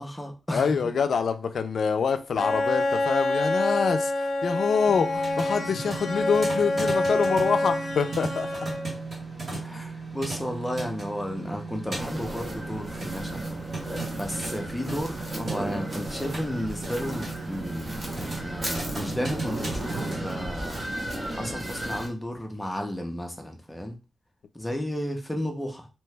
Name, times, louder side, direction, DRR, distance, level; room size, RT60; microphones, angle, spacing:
voice 1, 0.0-0.9 5.7-5.9 8.7-8.8 9.6-13.6 14.1-20.9 21.3-24.0 24.5-25.9, equal, 10° left, 0.6 m, -33 dB
voice 2, 0.5-8.5 9.5-9.7, left 6 dB, 65° left, 0.3 m, -26 dB
Bowed string instrument, 2.4-9.1, left 2 dB, 50° left, 0.8 m, -27 dB
sound 1, 4.9-20.4, right 3 dB, 45° right, 1.2 m, -37 dB
Walking on Grass, 11.9-22.1, right 1 dB, 25° right, 0.8 m, -34 dB
2.8 x 2.2 x 3.2 m
wide cardioid pair, 150°, 0 cm